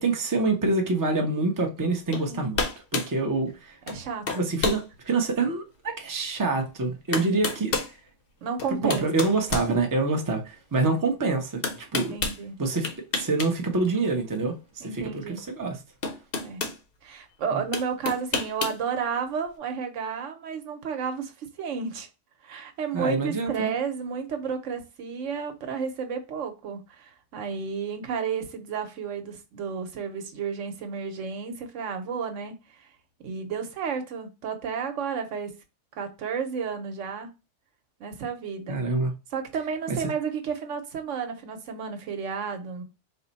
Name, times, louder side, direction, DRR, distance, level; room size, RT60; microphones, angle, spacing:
voice 1, 0.0-2.6 2.9-3.8 4.3-7.7 8.8-12.1 12.6-15.8 17.5-17.6 22.9-23.8 38.7-39.1 39.9-40.0, right 3 dB, 20° right, 0.5 m, -26 dB
sound 1, 2.1-2.3 2.5-3.1 3.9-4.0 4.3-4.8 5.4-5.5 6.6-6.7 7.1-7.9 8.6-10.3 11.6-12.4 12.8-13.5 13.8-14.0 15.4-15.5 16.0-16.8 17.7-18.8, left 4 dB, 55° left, 0.8 m, -29 dB
voice 2, 3.9-4.4 8.4-9.1 11.9-12.6 14.8-15.4 16.4-16.6 17.0-22.1 22.4-32.9 33.2-35.5 35.9-37.3 38.0-38.8 39.3-42.8, right 6 dB, 85° right, 1.1 m, -32 dB
4.3 x 2.1 x 4.0 m
omnidirectional pair, 1.2 m